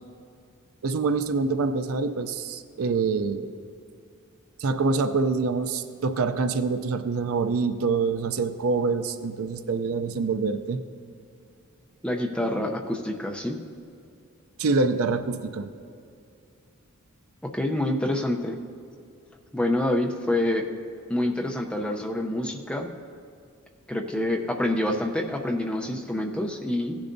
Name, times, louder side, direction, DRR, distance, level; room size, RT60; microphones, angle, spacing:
voice 1, 0.8-3.5 4.6-10.8 14.6-15.7, right 4 dB, 70° right, 10 dB, 0.5 m, -25 dB
voice 2, 12.0-13.6 17.5-18.6 19.5-20.6 21.1-22.9 23.9-27.0, left 1 dB, 5° left, 2 dB, 0.6 m, -27 dB
16.5 x 10.0 x 2.6 m, 2.5 s
head